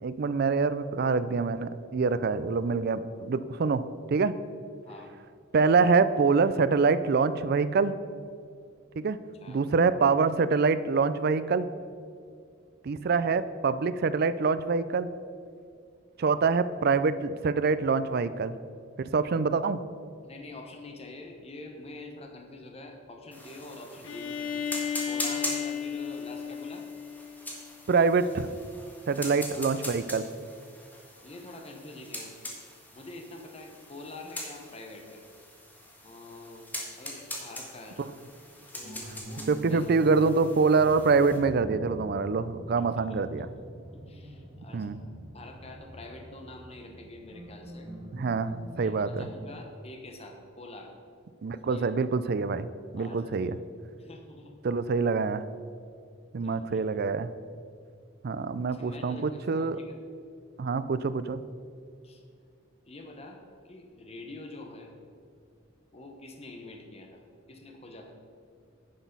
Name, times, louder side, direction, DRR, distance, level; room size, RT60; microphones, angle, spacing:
voice 1, 0.0-4.3 5.5-7.9 9.0-9.2 9.5-11.7 12.8-15.1 16.2-18.5 19.0-19.8 27.9-28.5 29.1-30.3 39.5-43.5 44.7-45.0 48.1-49.3 51.4-52.7 52.9-53.6 54.6-55.5 56.3-57.3 58.2-59.8 60.6-61.4, right 4 dB, 50° right, 13 dB, 0.4 m, -25 dB
voice 2, 4.8-5.1 9.4-9.6 13.1-13.2 20.2-26.8 29.3-30.0 31.2-32.3 32.9-35.3 36.0-38.2 38.7-40.0 42.7-43.2 44.1-47.9 48.6-50.9 51.7-51.9 52.9-53.5 54.0-54.5 56.5-56.8 58.7-60.0 62.0-62.2 62.9-63.4 63.6-64.9 65.9-67.2 67.5-68.1, left 2 dB, 30° left, 2 dB, 1.0 m, -46 dB
sound 1, 23.3-41.4, left 1 dB, 10° left, 1.6 m, -42 dB
Bowed string instrument, 24.0-27.8, left 8 dB, 75° left, 0.7 m, -34 dB
sound 2, 38.8-49.6, right 1 dB, 25° right, 1.6 m, -44 dB
10.0 x 6.2 x 5.4 m, 2.3 s
head